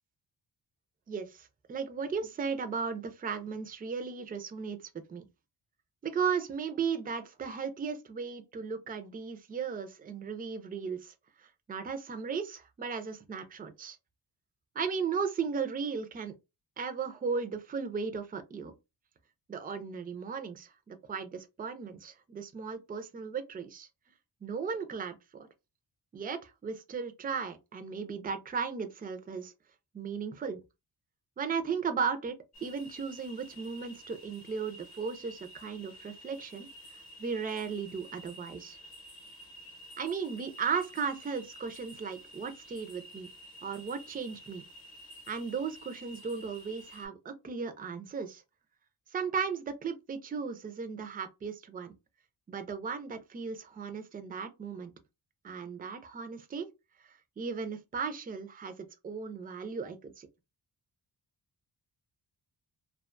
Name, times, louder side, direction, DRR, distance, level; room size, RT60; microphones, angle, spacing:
voice 1, 1.1-4.8 5.1-5.3 6.0-14.0 14.8-16.4 16.8-18.7 19.5-23.9 24.4-25.5 26.1-29.5 29.9-30.6 31.4-32.3 32.6-36.7 37.2-38.8 40.0-43.3 43.6-44.6 45.3-48.4 49.1-51.9 52.5-54.9 55.4-56.7 57.1-60.3, right 5 dB, 20° right, 0.4 m, -36 dB
sound 1, 32.5-47.1, equal, 40° left, 0.8 m, -51 dB
2.4 x 2.2 x 2.4 m
cardioid pair, 100°, 43 cm